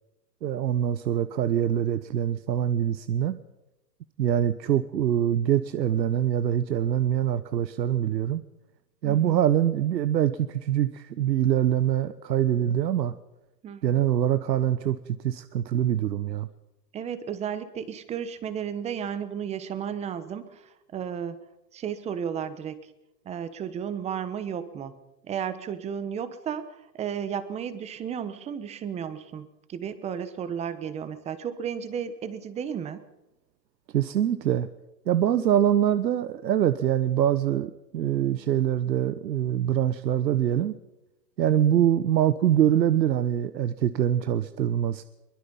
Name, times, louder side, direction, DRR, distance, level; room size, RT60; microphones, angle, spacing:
voice 1, 0.4-3.4 4.2-8.4 9.0-13.1 13.8-16.5 33.9-34.7 35.1-40.8 41.4-45.0, right 10 dB, 85° right, 13 dB, 1.2 m, -24 dB
voice 2, 9.0-9.4 13.6-14.0 16.9-21.4 21.7-22.9 23.2-25.0 25.2-33.0, right 8 dB, 15° right, 13 dB, 1.1 m, -33 dB
23.0 x 21.0 x 5.5 m, 0.96 s
hypercardioid pair, 150°, 50 cm